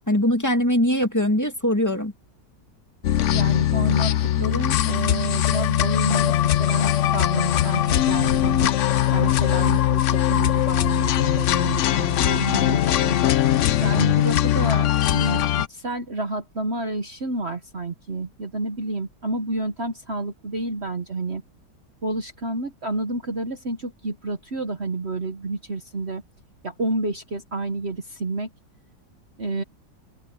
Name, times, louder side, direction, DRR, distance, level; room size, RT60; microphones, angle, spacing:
voice 1, 0.1-2.1, left 1 dB, 10° left, 2.3 m, -21 dB
sound 1, 3.0-15.7, left 12 dB, 65° left, 0.7 m, -21 dB
voice 2, 3.3-8.7 9.1-13.1 13.8-21.4 22.0-26.2 26.6-28.5 29.4-29.6, right 2 dB, 40° right, 1.4 m, -29 dB
open air
omnidirectional pair, 1.9 m